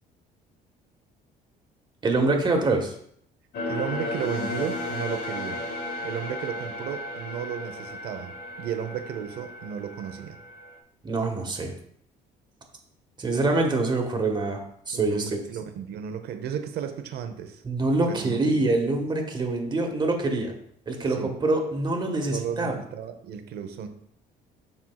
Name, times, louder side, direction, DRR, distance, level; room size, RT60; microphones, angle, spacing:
voice 1, 2.0-2.9 11.0-11.7 13.2-14.6 14.9-15.4 17.6-20.5 20.9-22.8, right 2 dB, 25° right, 2 dB, 1.4 m, -25 dB
sound 1, 3.5-10.8, left 1 dB, 65° left, 1.2 m, -34 dB
voice 2, 3.6-5.6 6.0-10.4 14.9-17.6 18.1-19.0 21.1-21.3 22.2-23.9, right 8 dB, 70° right, 8 dB, 0.8 m, -34 dB
12.0 x 4.4 x 2.3 m, 0.67 s
cardioid pair, 110°, 17 cm